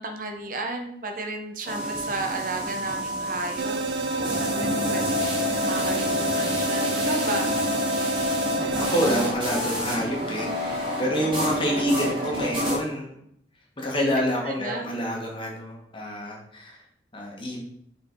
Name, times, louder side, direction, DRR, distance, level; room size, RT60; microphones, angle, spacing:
voice 1, 0.0-3.8 4.3-7.5 12.1-12.5 14.2-14.9, right 2 dB, 50° right, 4 dB, 0.8 m, -34 dB
sound 1, 1.6-12.8, left 1 dB, 30° right, 2.3 m, -28 dB
sound 2, 3.6-9.3, right 3 dB, 80° right, 0.5 m, -29 dB
voice 2, 8.8-13.2 13.8-16.8 17.1-17.6, equal, 30° left, -1 dB, 1.6 m, -28 dB
6.6 x 4.4 x 4.6 m, 0.70 s
head